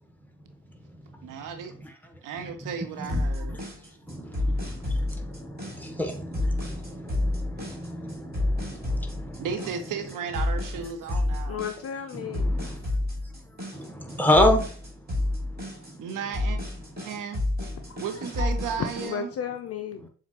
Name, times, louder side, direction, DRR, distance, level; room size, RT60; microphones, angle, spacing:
voice 1, 1.2-1.7 2.2-3.6 9.4-11.6 16.0-16.6 17.0-17.4 18.0-19.3, right 7 dB, 45° right, 0.7 m, -34 dB
sound 1, 3.1-19.1, left 2 dB, 20° right, 2.2 m, -29 dB
voice 2, 4.1-9.5 12.3-12.8 13.7-14.6 15.9-16.0, left 1 dB, 5° left, 1.0 m, -28 dB
voice 3, 11.5-12.6 17.7-18.5 19.0-20.1, left 7 dB, 35° left, 0.5 m, -35 dB
7.1 x 2.5 x 2.8 m
figure-of-eight pair, 50°, 43 cm